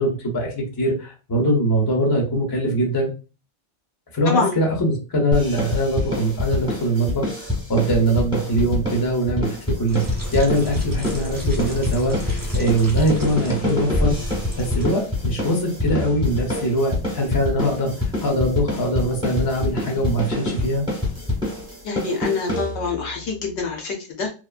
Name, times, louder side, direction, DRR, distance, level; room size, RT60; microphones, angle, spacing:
voice 1, 0.0-3.1 4.1-9.5 9.8-10.0 10.3-14.2 14.6-17.9 18.2-20.9, right 1 dB, 25° left, 1 dB, 0.6 m, -22 dB
sound 1, 5.3-23.1, left 2 dB, 5° right, 0.9 m, -26 dB
sound 2, 9.9-14.9, equal, 25° right, 0.5 m, -30 dB
voice 2, 21.8-24.3, left 4 dB, 70° left, 2 dB, 0.8 m, -25 dB
2.7 x 2.2 x 2.3 m, 0.33 s
omnidirectional pair, 1.3 m